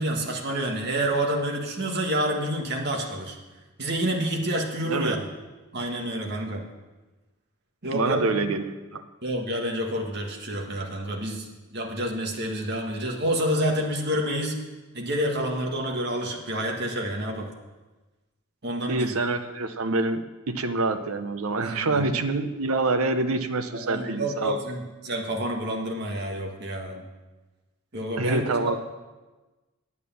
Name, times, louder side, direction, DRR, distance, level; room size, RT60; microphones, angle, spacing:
voice 1, 0.0-3.4 3.8-5.2 5.7-6.7 7.8-8.5 9.2-14.6 14.9-17.5 18.6-19.1 21.6-22.1 23.7-27.0 27.9-28.5, right 1 dB, 50° right, 1 dB, 1.6 m, -28 dB
voice 2, 7.9-9.0 18.9-24.6 28.2-28.8, right 3 dB, 70° right, 9 dB, 0.8 m, -26 dB
9.4 x 8.3 x 6.9 m, 1.2 s
head